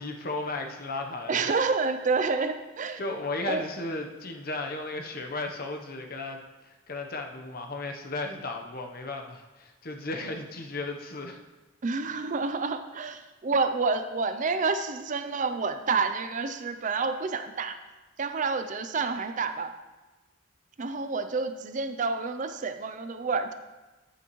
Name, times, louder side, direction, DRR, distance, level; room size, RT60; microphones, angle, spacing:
voice 1, 0.0-1.4 3.0-6.4 6.6-11.4, left 2 dB, 45° left, 3 dB, 0.9 m, -35 dB
voice 2, 1.3-3.0 3.4-3.6 11.8-17.8 18.2-19.7 20.8-23.5, right 4 dB, 35° right, 9 dB, 0.4 m, -29 dB
9.4 x 9.0 x 3.1 m, 1.2 s
head